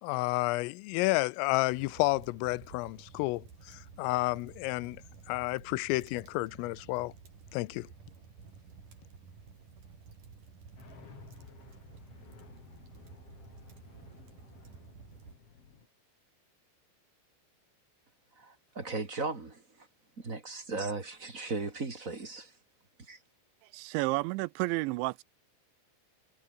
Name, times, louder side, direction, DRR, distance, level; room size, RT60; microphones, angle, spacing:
voice 1, 0.0-5.0 5.3-7.1 7.5-7.9, left 22 dB, 85° left, 3.3 m, -31 dB
sound 1, 1.7-15.4, right 5 dB, 40° right, 5.7 m, -53 dB
sound 2, 10.8-15.9, left 5 dB, 35° left, 3.4 m, -55 dB
voice 2, 18.4-19.9 20.2-22.5 23.1-23.2, right 3 dB, 25° right, 2.0 m, -37 dB
voice 3, 23.6-25.2, right 22 dB, 90° right, 2.6 m, -31 dB
omnidirectional pair, 5.9 m